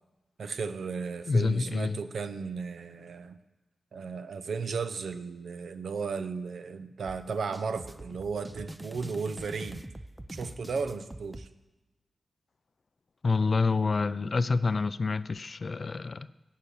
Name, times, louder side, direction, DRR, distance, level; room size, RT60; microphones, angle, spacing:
voice 1, 0.4-3.4 3.9-9.8 10.3-11.5, right 5 dB, 75° right, 10 dB, 0.8 m, -35 dB
voice 2, 1.3-2.0 13.2-16.3, left 4 dB, 45° left, 15 dB, 0.4 m, -27 dB
sound 1, 7.1-11.5, right 1 dB, 10° right, 0.5 m, -44 dB
16.0 x 5.7 x 8.4 m, 1.1 s
wide cardioid pair, 115°, 0 cm